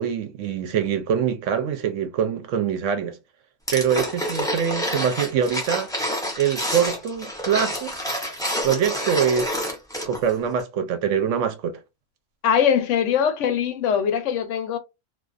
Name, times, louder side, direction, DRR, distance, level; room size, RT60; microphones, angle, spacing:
voice 1, 0.0-3.2 3.7-5.9 6.4-7.9 8.6-9.6 10.1-11.8, right 8 dB, 70° right, 0.8 m, -24 dB
sound 1, 3.7-10.3 10.6-10.7, equal, 5° left, 0.3 m, -28 dB
voice 2, 12.4-14.8, left 8 dB, 70° left, 0.8 m, -21 dB
2.4 x 2.2 x 2.4 m
omnidirectional pair, 1.5 m